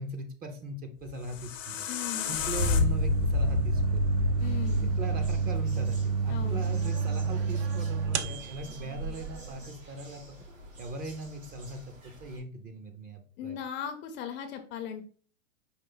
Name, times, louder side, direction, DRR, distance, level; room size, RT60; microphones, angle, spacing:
voice 1, 0.0-1.9 2.3-4.1 5.0-10.4 10.8-13.6, right 1 dB, 25° right, 6 dB, 0.6 m, -40 dB
sound 1, 1.0-6.1, left 5 dB, 85° left, 0.8 m, -30 dB
voice 2, 1.9-2.4 4.4-4.9 6.3-6.7 13.4-15.0, left 8 dB, 30° left, 7 dB, 0.6 m, -38 dB
sound 2, 2.6-9.6, right 5 dB, 60° right, 0.7 m, -29 dB
sound 3, 4.4-12.4, right 1 dB, 90° right, 2.4 m, -50 dB
5.4 x 2.4 x 3.8 m, 0.42 s
hypercardioid pair, 120°, 37 cm